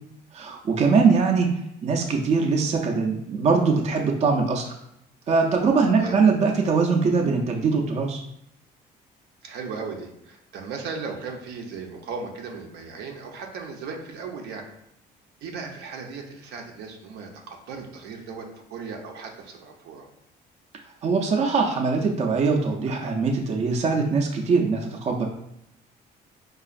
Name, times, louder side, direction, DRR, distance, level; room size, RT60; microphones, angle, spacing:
voice 1, 0.3-4.7 5.3-8.2 21.0-25.3, right 4 dB, 40° right, 1 dB, 0.5 m, -22 dB
voice 2, 9.4-14.7 15.4-20.1, right 5 dB, 80° right, 2 dB, 0.7 m, -37 dB
4.7 x 2.4 x 2.5 m, 0.80 s
cardioid pair, 110°, 17 cm